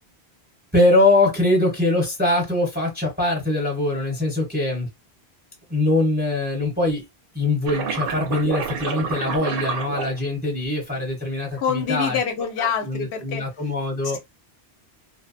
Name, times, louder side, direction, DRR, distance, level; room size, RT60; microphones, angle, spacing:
voice 1, 0.7-4.9 5.7-7.0 7.3-12.2 12.6-14.2, left 2 dB, 10° right, 0.8 m, -22 dB
sound 1, 7.7-10.6 11.5-11.9, right 6 dB, 65° right, 0.8 m, -29 dB
voice 2, 11.6-13.5 14.1-14.2, left 7 dB, 85° left, 0.8 m, -26 dB
2.6 x 2.1 x 2.4 m
omnidirectional pair, 1.1 m